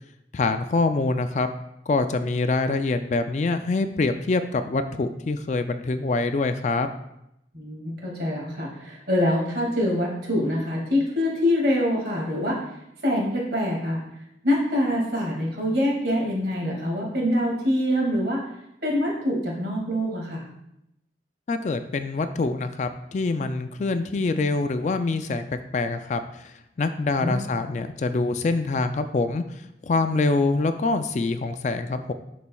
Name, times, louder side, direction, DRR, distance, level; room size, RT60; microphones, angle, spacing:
voice 1, 0.3-1.5 1.9-6.9 21.5-29.4 29.8-32.1, left 3 dB, 40° left, 9 dB, 0.3 m, -25 dB
voice 2, 7.5-12.6 13.0-14.0 14.4-18.4 18.8-20.4 27.2-27.4, left 1 dB, 60° right, -3 dB, 2.1 m, -25 dB
11.0 x 4.1 x 2.3 m, 0.83 s
head